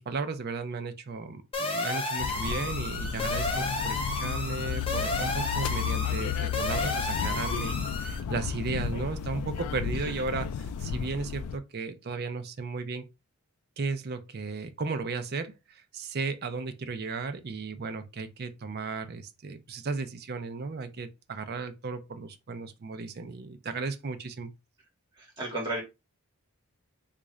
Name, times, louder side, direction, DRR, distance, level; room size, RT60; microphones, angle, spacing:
voice 1, 0.0-13.0 13.8-24.5, right 4 dB, 45° right, 0.5 m, -35 dB
sound 1, 1.5-8.2, left 3 dB, 25° left, 0.6 m, -32 dB
sound 2, 2.2-11.6, left 7 dB, 90° left, 0.3 m, -33 dB
voice 2, 25.2-25.8, right 1 dB, 20° right, 1.7 m, -33 dB
3.6 x 2.5 x 3.1 m
head